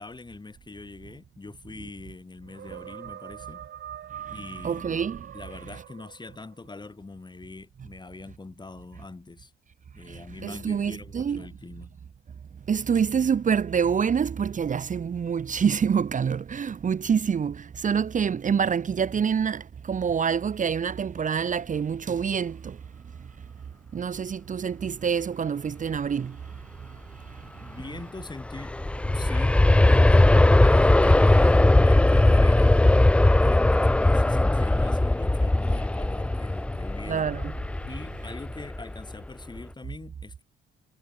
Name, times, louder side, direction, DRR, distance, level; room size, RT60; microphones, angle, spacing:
voice 1, 0.0-3.6 4.3-5.0 5.3-9.5 9.9-12.0 27.6-28.8 29.1-30.3 30.6-33.1 33.4-37.4 37.9-40.4, left 3 dB, 20° left, 6.3 m, -43 dB
sound 1, 2.5-6.6, right 10 dB, 60° right, 1.2 m, -42 dB
voice 2, 4.6-5.2 10.1-11.4 12.7-22.8 23.9-26.4 37.1-37.5, right 7 dB, 40° right, 1.1 m, -26 dB
Aircraft, 28.3-39.1 39.6-39.7, left 1 dB, 5° left, 0.3 m, -19 dB
cardioid pair, 90°, 20 cm